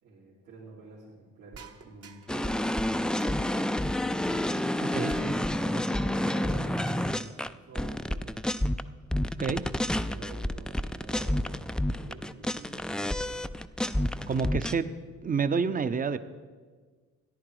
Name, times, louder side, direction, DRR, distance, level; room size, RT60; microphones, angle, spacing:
voice 1, 0.0-4.5 5.1-8.3 9.5-13.2, right 3 dB, 85° right, -8 dB, 3.1 m, -48 dB
sound 1, 1.5-2.5 3.2-3.8 4.9-5.5 6.5-7.2, right 6 dB, 55° right, 1.1 m, -51 dB
sound 2, 2.3-8.8 9.1-14.7, left 1 dB, 5° left, 0.3 m, -29 dB
voice 2, 14.3-14.9 15.2-16.2, right 5 dB, 30° right, 13 dB, 0.6 m, -28 dB
14.0 x 10.5 x 4.9 m, 1.5 s
cardioid pair, 90°, 30 cm